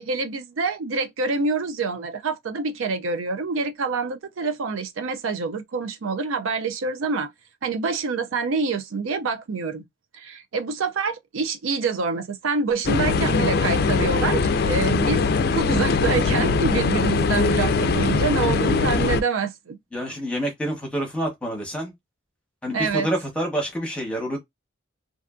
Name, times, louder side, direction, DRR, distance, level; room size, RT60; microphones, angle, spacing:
voice 1, 0.0-7.3 7.6-9.8 10.1-15.2 15.5-19.8 22.7-23.1, right 4 dB, 85° right, 0.5 m, -26 dB
sound 1, 12.8-19.2, left 4 dB, 50° left, 0.3 m, -21 dB
voice 2, 19.9-21.9 22.6-24.4, right 1 dB, 5° left, 0.8 m, -27 dB
2.6 x 2.5 x 2.2 m
head